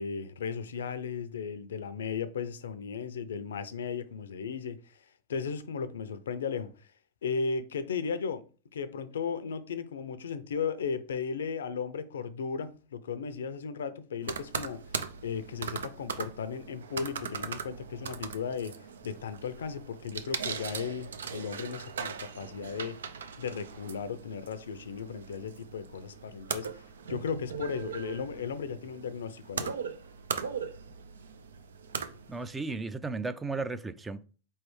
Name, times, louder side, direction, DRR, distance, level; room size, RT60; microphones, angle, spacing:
voice 1, 0.0-5.0 5.3-6.9 7.2-8.5 8.7-14.8 15.2-23.0 23.4-26.8 27.1-29.8, left 6 dB, 85° left, 0.5 m, -36 dB
sound 1, 14.2-32.6, right 6 dB, 90° right, 0.4 m, -39 dB
voice 2, 32.3-34.2, right 3 dB, 15° right, 0.4 m, -35 dB
4.5 x 3.2 x 3.1 m
hypercardioid pair, 110°, 0 cm